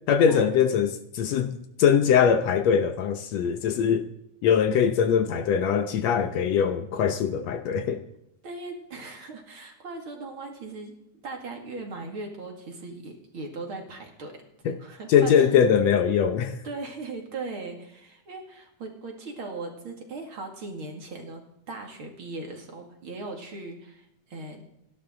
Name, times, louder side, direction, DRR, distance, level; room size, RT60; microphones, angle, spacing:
voice 1, 0.1-4.1 4.4-8.0 14.7-14.8 15.1-16.6, left 7 dB, 70° left, 1.9 m, -22 dB
voice 2, 8.4-10.9 11.2-15.6 16.6-21.4 21.7-24.6, right 3 dB, 45° right, 2.9 m, -38 dB
29.0 x 12.0 x 3.8 m
omnidirectional pair, 3.4 m